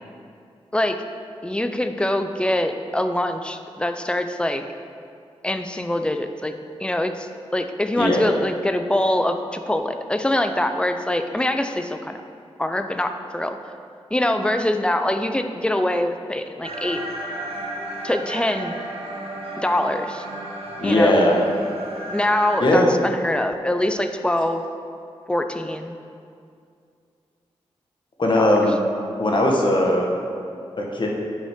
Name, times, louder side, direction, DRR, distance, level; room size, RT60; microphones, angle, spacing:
voice 1, 1.4-4.6 5.4-6.5 6.8-12.2 12.6-13.6 14.1-17.0 18.0-18.8 19.6-20.3 20.8-21.1 22.1-24.6 25.3-26.0 28.3-28.5, left 1 dB, 10° left, 7 dB, 0.5 m, -24 dB
sound 1, 16.6-22.6, right 1 dB, 65° right, 1.1 m, -33 dB
voice 2, 20.8-21.4 22.6-22.9 28.2-28.7 29.2-30.1 30.8-31.1, left 1 dB, 45° left, -1 dB, 1.2 m, -18 dB
8.5 x 5.4 x 3.6 m, 2.4 s
cardioid pair, 70°, 11 cm